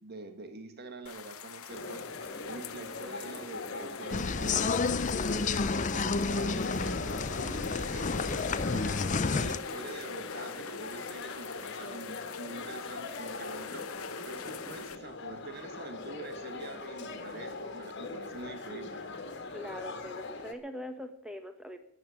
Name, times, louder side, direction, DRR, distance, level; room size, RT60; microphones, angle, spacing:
voice 1, 0.0-4.8 5.2-13.9 14.2-19.0, right 3 dB, 45° right, 7 dB, 1.8 m, -45 dB
sound 1, 1.1-15.0, left 9 dB, 75° left, 0.8 m, -46 dB
sound 2, 1.7-20.5, left 3 dB, 50° left, 1.9 m, -41 dB
sound 3, 4.1-9.6, left 4 dB, 35° left, 0.5 m, -30 dB
voice 2, 19.5-21.8, left 1 dB, 5° right, 7 dB, 1.5 m, -42 dB
12.5 x 9.0 x 10.0 m, 0.69 s
head